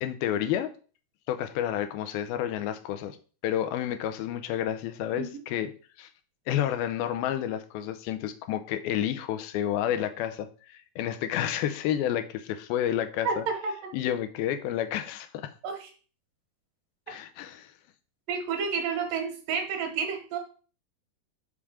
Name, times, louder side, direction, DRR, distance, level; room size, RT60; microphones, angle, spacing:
voice 1, 0.0-0.7 1.3-3.2 3.4-5.7 6.0-6.1 6.5-13.4 13.9-15.5 17.1-17.7, left 11 dB, 85° left, 9 dB, 2.5 m, -30 dB
voice 2, 13.2-13.9 15.6-15.9 18.3-20.4, right 5 dB, 75° right, 5 dB, 2.9 m, -30 dB
6.1 x 5.4 x 4.9 m, 0.38 s
omnidirectional pair, 4.2 m